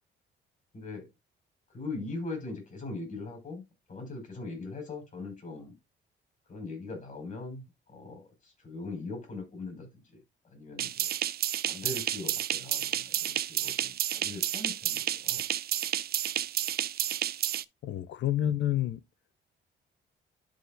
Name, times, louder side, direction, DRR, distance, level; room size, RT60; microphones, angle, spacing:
voice 1, 0.7-1.1 1.7-5.7 6.5-10.2 10.4-11.1 11.7-15.5, left 3 dB, 40° left, 5.3 m, -41 dB
sound 1, 10.8-17.6, right 11 dB, 50° right, 0.4 m, -31 dB
voice 2, 17.8-19.0, left 12 dB, 65° left, 0.5 m, -29 dB
12.0 x 4.3 x 2.5 m
cardioid pair, 90°, 20 cm